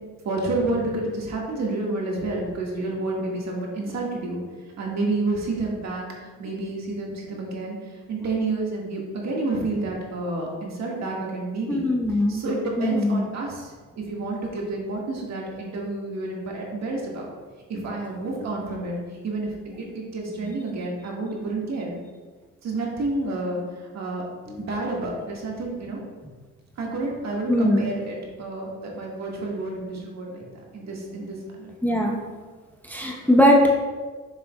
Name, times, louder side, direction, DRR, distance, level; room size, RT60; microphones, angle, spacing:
voice 1, 0.2-4.4 4.8-11.9 12.3-17.2 17.7-19.0 19.2-21.9 22.6-24.2 24.6-26.0 26.8-30.4 30.7-31.7, right 2 dB, 60° right, -2 dB, 1.7 m, -29 dB
voice 2, 11.7-12.4 12.8-13.3 24.5-24.6 27.5-27.9 31.8-32.2 32.8-33.7, left 1 dB, 5° left, -1 dB, 0.8 m, -20 dB
6.9 x 6.7 x 2.2 m, 1.4 s
cardioid pair, 90°, 30 cm